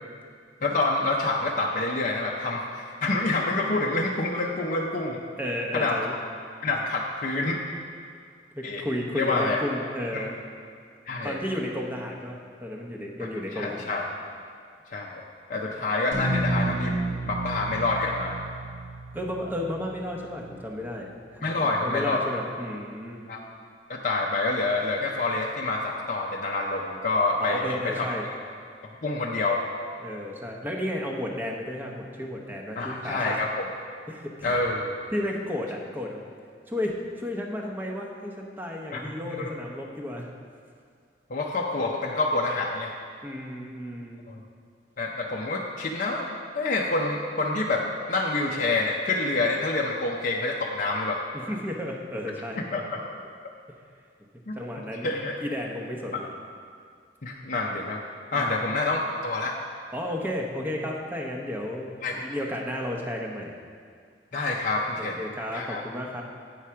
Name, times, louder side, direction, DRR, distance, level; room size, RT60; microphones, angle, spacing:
voice 1, 0.6-5.2 5.7-6.0 6.6-7.6 8.6-8.8 9.1-9.6 10.1-10.3 11.1-11.4 13.5-14.0 14.9-15.2 15.5-17.0 17.2-18.4 21.4-22.2 23.3-23.4 23.9-28.1 29.0-29.6 32.8-33.7 34.4-34.9 38.9-39.5 41.3-42.9 44.3-44.4 45.0-51.2 52.7-53.0 54.5-54.6 55.0-55.3 56.1-56.2 57.2-58.0 58.3-59.5 62.0-62.2 64.3-65.2 65.5-65.8, left 2 dB, 45° left, -2 dB, 0.6 m, -27 dB
voice 2, 5.4-6.1 8.5-10.4 11.2-14.0 15.5-15.8 19.1-21.5 21.8-23.2 27.4-28.3 30.0-33.4 34.1-34.6 35.1-36.2 36.7-40.3 43.2-44.2 51.3-52.6 54.5-56.3 58.3-58.6 59.9-63.5 65.0-66.2, left 1 dB, 10° right, 0 dB, 0.8 m, -33 dB
sound 1, 16.1-20.7, right 1 dB, 85° right, 1.8 m, -31 dB
8.6 x 4.8 x 5.6 m, 2.2 s
head